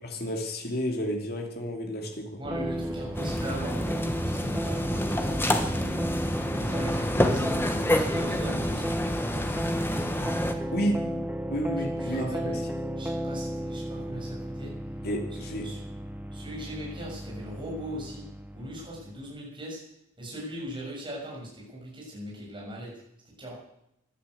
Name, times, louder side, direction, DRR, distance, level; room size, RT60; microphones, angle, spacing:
voice 1, 0.0-2.4 10.7-11.1 11.5-12.5 15.0-15.7, equal, 50° left, 2 dB, 2.7 m, -31 dB
sound 1, 2.4-19.2, right 1 dB, 5° right, 0.9 m, -34 dB
voice 2, 2.4-5.9 6.7-9.4 12.0-12.6 13.0-14.7 15.4-15.8 16.3-18.2 18.5-19.8 20.2-22.9 23.2-23.5, right 1 dB, 25° right, -3 dB, 7.3 m, -40 dB
sound 2, 3.1-10.5, left 1 dB, 10° left, 1.4 m, -28 dB
14.5 x 12.0 x 8.3 m, 0.81 s
head